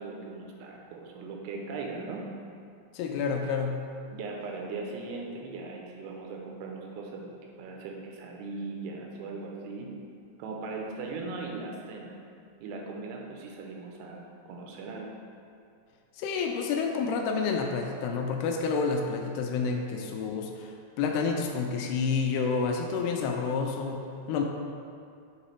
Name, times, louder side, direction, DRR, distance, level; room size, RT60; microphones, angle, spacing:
voice 1, 0.0-2.3 4.1-9.9 10.4-12.1 12.6-14.2 14.5-15.1 19.6-19.7, right 3 dB, 85° right, 0 dB, 2.8 m, -39 dB
voice 2, 2.9-3.9 16.2-20.7 21.0-24.4, left 5 dB, 85° left, 2 dB, 2.6 m, -29 dB
7.0 x 4.0 x 4.3 m, 2.4 s
omnidirectional pair, 4.7 m